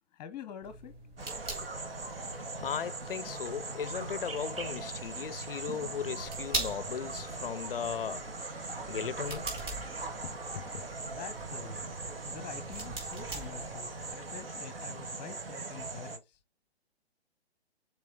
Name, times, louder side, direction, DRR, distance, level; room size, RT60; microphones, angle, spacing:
voice 1, 0.1-0.9 11.1-11.9 12.3-16.4, left 7 dB, 15° left, 0.9 m, -46 dB
sound 1, 0.6-14.1, right 2 dB, 15° right, 3.7 m, -44 dB
sound 2, 1.2-16.2, right 3 dB, 60° right, 1.6 m, -40 dB
voice 2, 2.5-9.6 10.2-10.8, left 8 dB, 60° left, 0.5 m, -37 dB
sound 3, 6.8-14.6, right 3 dB, 40° right, 4.0 m, -54 dB
6.8 x 4.2 x 3.4 m
figure-of-eight pair, 130°, 32 cm